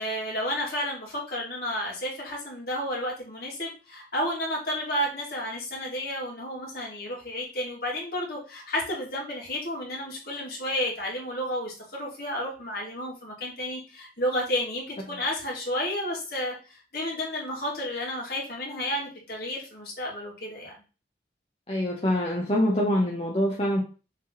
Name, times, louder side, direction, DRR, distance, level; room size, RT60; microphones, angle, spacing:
voice 1, 0.0-20.8, equal, 55° left, -2 dB, 2.6 m, -31 dB
voice 2, 21.7-23.8, equal, 35° left, -2 dB, 1.0 m, -25 dB
6.5 x 3.7 x 4.0 m, 0.34 s
head